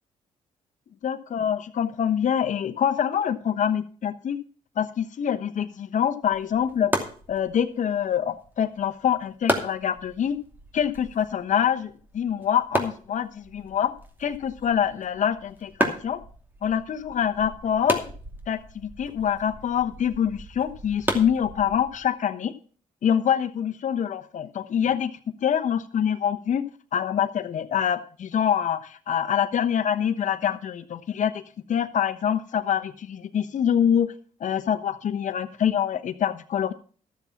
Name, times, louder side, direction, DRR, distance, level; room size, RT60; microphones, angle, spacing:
voice 1, 1.0-4.4 4.8-6.9 7.3-10.4 10.7-13.9 14.2-16.2 16.6-18.0 18.5-22.5 23.0-25.1 25.4-26.6 26.9-31.4 31.7-34.1 34.4-36.7, left 9 dB, 60° left, 8 dB, 1.0 m, -25 dB
sound 1, 6.2-22.1, right 1 dB, 15° right, 2.6 m, -34 dB
13.0 x 7.1 x 5.9 m, 0.43 s
cardioid pair, 80°, 14 cm